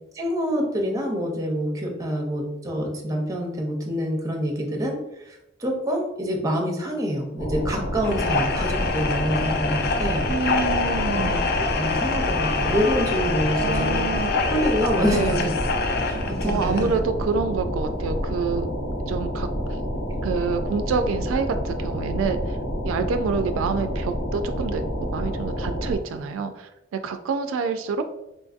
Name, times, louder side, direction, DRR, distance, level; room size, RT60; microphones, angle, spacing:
voice 1, 0.1-5.0 5.2-10.6 11.1-14.1 14.5-15.5 16.0-16.9, equal, 15° right, 1 dB, 0.6 m, -26 dB
sound 1, 7.4-26.0, equal, 75° left, 1.0 m, -28 dB
sound 2, 8.0-17.0, left 4 dB, 50° left, 0.3 m, -26 dB
voice 2, 10.3-11.3 13.5-14.3 15.0-15.5 16.4-18.7 19.1-19.5 20.2-22.6 22.8-28.0, right 5 dB, 90° right, 8 dB, 0.3 m, -27 dB
3.8 x 2.6 x 2.4 m, 0.90 s
head